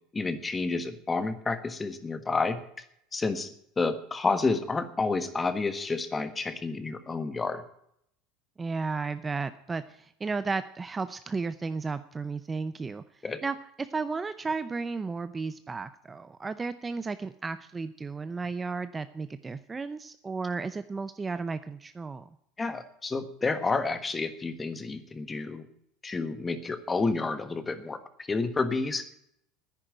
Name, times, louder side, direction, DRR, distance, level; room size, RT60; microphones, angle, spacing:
voice 1, 0.1-2.6 3.1-7.6 13.2-13.4 22.6-25.7 26.0-28.0 28.3-29.0, left 3 dB, 15° left, 11 dB, 1.4 m, -30 dB
voice 2, 8.6-13.0 13.4-22.3, right 4 dB, 15° right, 12 dB, 0.6 m, -34 dB
10.0 x 10.0 x 8.9 m, 0.73 s
supercardioid pair, 125°, 0 cm